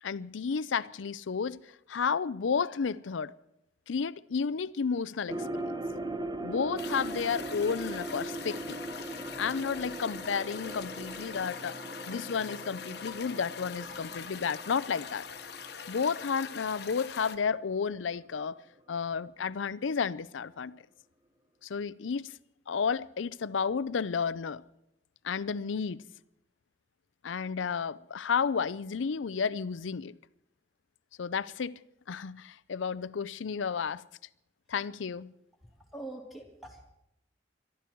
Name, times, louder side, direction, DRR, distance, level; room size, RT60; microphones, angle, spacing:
voice 1, 0.0-1.6 1.9-3.3 3.9-5.7 6.4-8.8 9.4-11.8 12.1-15.2 15.9-18.6 18.9-20.8 21.6-22.3 22.7-24.6 25.2-26.0 27.2-30.2 31.2-31.7 32.1-34.0 34.7-35.3, left 6 dB, 85° left, 0.5 m, -32 dB
sound 1, 5.3-17.5 17.8-17.9, right 1 dB, 20° right, 0.8 m, -40 dB
sound 2, 6.8-17.4, left 7 dB, 55° left, 1.1 m, -44 dB
voice 2, 35.7-36.9, right 2 dB, ahead, 2.7 m, -44 dB
22.5 x 13.0 x 4.6 m
head